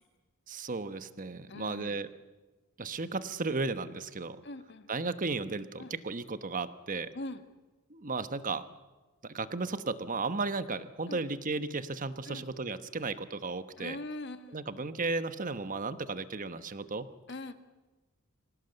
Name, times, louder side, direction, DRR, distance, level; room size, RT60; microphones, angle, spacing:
voice 1, 0.5-2.1 2.8-4.4 4.9-7.1 7.9-8.6 9.2-14.0 14.5-17.1, right 3 dB, 40° right, 12 dB, 1.1 m, -34 dB
voice 2, 1.5-2.0 4.4-4.9 5.8-5.9 7.1-7.4 11.1-11.2 12.3-12.4 13.8-14.6 17.3-17.5, left 2 dB, 55° left, 9 dB, 1.7 m, -41 dB
25.5 x 17.5 x 8.0 m, 1.2 s
head